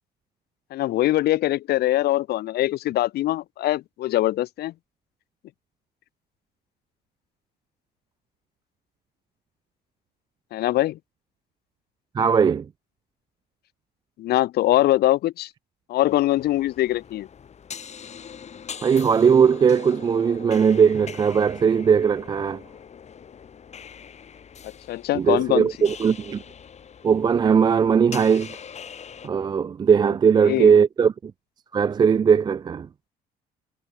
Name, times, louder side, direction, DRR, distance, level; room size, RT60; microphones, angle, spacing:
voice 1, 0.7-4.7 10.5-11.0 14.2-15.5 15.9-17.3 24.9-25.7 30.4-30.7, left 15 dB, 70° left, 1.1 m, -22 dB
voice 2, 12.2-12.7 18.8-22.6 25.1-26.4 27.0-28.6 29.2-31.3 31.7-32.9, right 6 dB, 25° right, 0.3 m, -19 dB
sound 1, 16.0-29.3, left 7 dB, 40° left, 5.1 m, -42 dB
cardioid pair, 110°, 17 cm